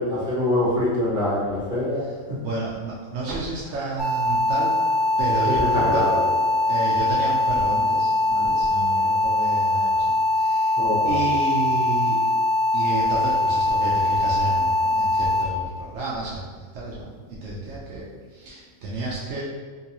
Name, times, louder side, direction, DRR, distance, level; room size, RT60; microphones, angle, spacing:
voice 1, 0.0-2.0 3.7-3.9 5.4-6.2 10.8-11.3, left 1 dB, 40° right, -8 dB, 1.2 m, -24 dB
voice 2, 2.4-4.7 5.2-6.0 6.5-10.8 11.0-12.2 12.7-16.4 16.7-18.1 18.3-19.4, right 2 dB, 65° right, -5 dB, 0.8 m, -31 dB
sound 1, 4.0-15.4, left 2 dB, 35° left, 1.3 m, -22 dB
3.8 x 2.4 x 2.8 m, 1.5 s
omnidirectional pair, 1.5 m